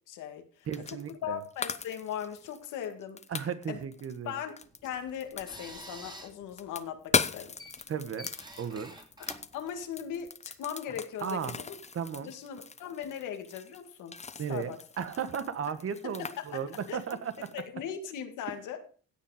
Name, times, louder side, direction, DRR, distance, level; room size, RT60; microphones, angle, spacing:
voice 1, 0.1-3.2 3.7-3.8 4.2-7.5 9.5-11.8 12.2-14.1 14.5-14.8 16.2-17.0 17.5-18.8, left 9 dB, 90° left, 6 dB, 2.1 m, -39 dB
sound 1, 0.7-1.2 1.4-5.9 6.2-17.7, left 4 dB, 20° left, 0.8 m, -38 dB
voice 2, 0.7-1.4 3.3-4.4 7.9-8.3 8.6-8.9 11.2-11.5 11.9-12.3 14.4-17.6, right 7 dB, 50° right, 11 dB, 1.4 m, -35 dB
sound 2, 4.6-10.3, equal, 15° right, 3.0 m, -49 dB
16.5 x 6.0 x 4.9 m, 0.39 s
cardioid pair, 90°, 30 cm